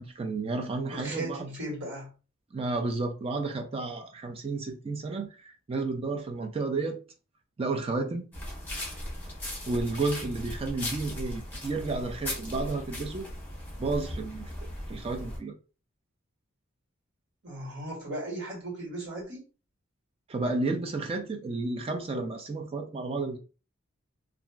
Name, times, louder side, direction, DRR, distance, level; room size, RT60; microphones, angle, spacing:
voice 1, 0.0-1.5 2.5-7.0 7.6-8.3 9.7-13.3 13.8-15.5 20.3-23.4, right 3 dB, 30° right, 0.3 m, -32 dB
voice 2, 0.9-2.1 17.4-19.5, right 1 dB, 60° right, 1.5 m, -37 dB
sound 1, 8.3-15.4, left 1 dB, 10° left, 0.9 m, -38 dB
2.9 x 2.4 x 2.3 m
head